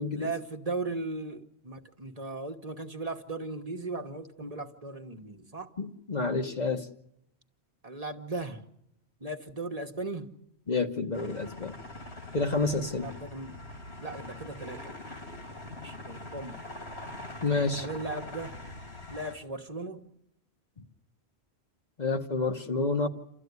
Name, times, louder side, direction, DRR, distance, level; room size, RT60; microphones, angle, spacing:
voice 1, 0.1-5.7 7.8-8.7 9.2-10.3 12.8-13.6 14.0-15.0 15.8-16.6 17.8-18.5 19.1-20.1, right 2 dB, 35° right, 4 dB, 1.3 m, -37 dB
voice 2, 5.8-6.9 10.7-11.8 12.3-13.1 17.4-17.8 22.0-23.1, left 3 dB, 40° left, 4 dB, 1.2 m, -29 dB
sound 1, 11.1-19.4, left 2 dB, 80° left, 3.3 m, -43 dB
28.5 x 13.5 x 9.5 m, 0.79 s
omnidirectional pair, 1.1 m